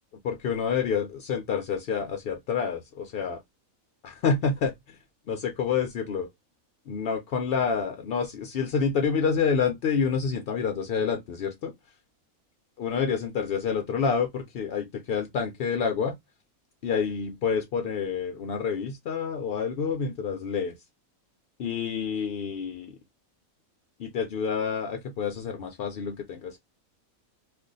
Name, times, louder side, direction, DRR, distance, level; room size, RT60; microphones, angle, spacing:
voice 1, 0.2-3.4 4.0-4.7 5.3-6.3 6.9-11.7 12.8-16.2 16.8-20.7 21.6-23.0 24.0-26.6, left 6 dB, 65° left, 0.5 m, -28 dB
2.5 x 2.3 x 3.8 m
omnidirectional pair, 1.4 m